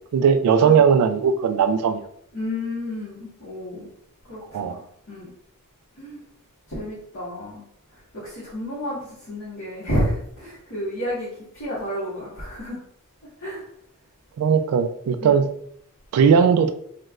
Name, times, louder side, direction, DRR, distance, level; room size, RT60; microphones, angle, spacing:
voice 1, 0.1-2.0 4.5-4.8 14.4-15.5 16.1-16.7, right 6 dB, 85° right, 9 dB, 0.3 m, -18 dB
voice 2, 2.3-3.9 4.3-4.8 5.1-5.3 6.0-6.2 6.7-7.6 8.1-12.8 13.4-13.6 15.2-15.4, left 1 dB, 60° left, -10 dB, 1.1 m, -30 dB
3.2 x 2.1 x 3.5 m, 0.68 s
head